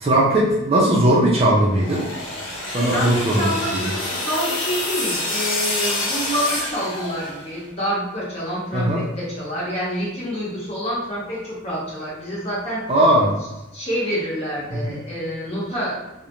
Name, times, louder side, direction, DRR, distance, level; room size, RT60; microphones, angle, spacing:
voice 1, 0.0-2.0 2.7-3.9 8.7-9.1 12.9-13.4 14.7-14.9, right 1 dB, 30° right, -4 dB, 0.4 m, -18 dB
sound 1, 1.7-7.6, left 2 dB, 75° left, 0.7 m, -27 dB
voice 2, 2.9-12.8 13.7-16.3, equal, 30° left, -6 dB, 0.8 m, -27 dB
2.5 x 2.1 x 2.9 m, 0.98 s
head